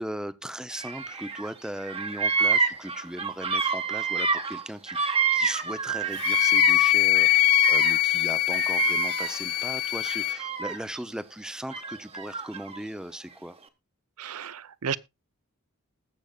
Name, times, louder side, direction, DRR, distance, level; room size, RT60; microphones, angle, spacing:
voice 1, 0.0-13.6, equal, 5° right, 0.6 m, -38 dB
Bird vocalization bird call bird song, 0.8-1.5 1.8-6.9 7.1-9.5 10.0-11.0 11.7-12.8, right 5 dB, 25° right, 1.2 m, -28 dB
Wind instrument woodwind instrument, 6.2-10.4, left 16 dB, 80° left, 0.5 m, -23 dB
voice 2, 14.2-15.0, right 7 dB, 80° right, 0.7 m, -33 dB
20.0 x 7.1 x 2.4 m
head